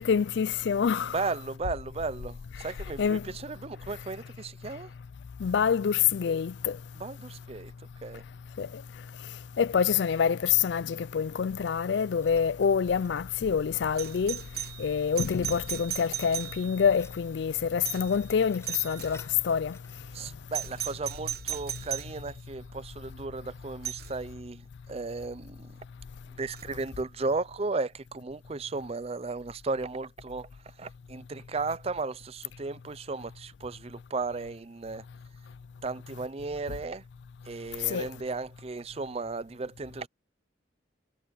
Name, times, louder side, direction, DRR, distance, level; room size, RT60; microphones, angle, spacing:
voice 1, 0.0-1.2 3.0-3.3 5.4-6.8 8.6-8.8 9.6-14.4 14.8-19.8 37.9-38.1, left 7 dB, 65° left, 0.4 m, -26 dB
voice 2, 1.1-4.9 7.0-7.7 8.0-8.2 20.1-25.7 26.4-30.5 30.8-35.0 35.8-37.0 37.5-40.1, right 3 dB, 30° right, 0.5 m, -35 dB
sound 1, 11.9-14.0 15.2-16.2 16.5-17.7 17.9-20.2, left 3 dB, 15° left, 7.1 m, -56 dB
sound 2, 12.2-24.3, equal, 10° right, 3.8 m, -55 dB
Doorbell, 14.0-16.9 17.8-18.2 18.6-19.2 20.5-22.2 23.8-24.1 26.5-26.6, right 11 dB, 55° right, 1.2 m, -37 dB
head